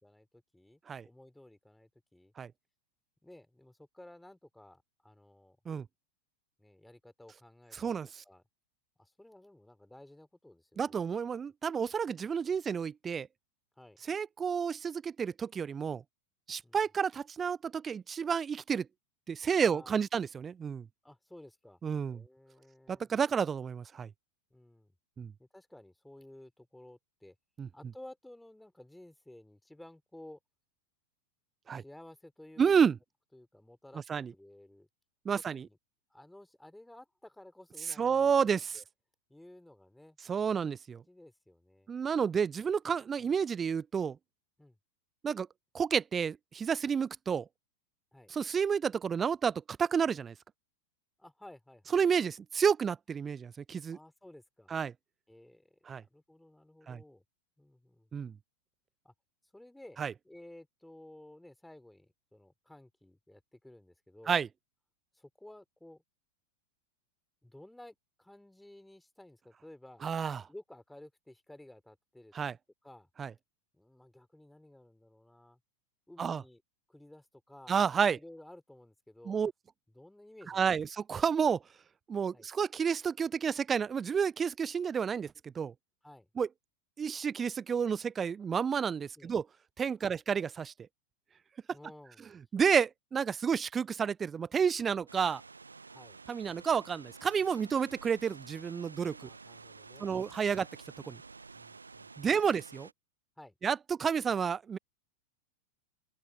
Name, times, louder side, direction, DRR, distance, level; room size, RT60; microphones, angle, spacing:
voice 1, 0.5-2.3 3.2-5.6 6.6-8.0 8.2-8.4 9.0-11.0 11.4-11.5 13.8-14.0 16.6-16.8 19.6-20.0 21.0-21.8 22.1-23.1 24.5-24.9 25.4-27.3 27.7-30.4 31.7-32.6 33.3-34.9 35.3-35.8 36.1-38.4 38.7-38.8 39.3-40.2 41.1-41.9 43.2-43.3 44.6-44.8 48.1-48.3 51.2-52.0 53.9-54.7 55.3-57.2 57.6-58.2 59.0-59.1 59.5-64.4 65.1-66.0 67.4-70.1 70.5-72.3 72.8-73.1 73.7-75.6 76.1-76.6 76.9-79.4 79.9-80.9 82.3-82.5 86.0-86.3 89.2-89.3 90.0-90.2 91.7-92.3 95.9-96.2 99.2-100.1 101.5-102.1 103.4-103.5, left 1 dB, 5° left, 4.5 m, -54 dB
voice 2, 10.8-13.3 14.1-16.0 16.5-18.9 19.3-20.9 21.8-22.2 22.9-24.1 25.2-25.3 27.6-27.7 31.7-31.8 32.6-33.0 34.1-34.3 35.3-35.7 38.0-38.8 40.3-41.0 41.9-44.2 45.2-45.5 45.7-47.5 48.3-50.3 51.9-54.0 54.7-54.9 55.9-56.0 56.9-57.0 58.1-58.3 60.0-60.1 64.3-64.5 70.0-70.4 72.3-72.5 73.2-73.3 76.2-76.4 77.7-78.2 79.3-79.5 80.5-81.6 82.1-85.7 86.4-86.5 87.0-89.4 89.8-90.7 92.5-95.4 96.3-99.2 100.0-100.7 101.1-101.2 102.2-102.9 103.6-104.8, right 6 dB, 20° right, 0.3 m, -30 dB
sound 1, 95.1-102.9, right 4 dB, 80° right, 0.9 m, -51 dB
open air
figure-of-eight pair, 90°, 0 cm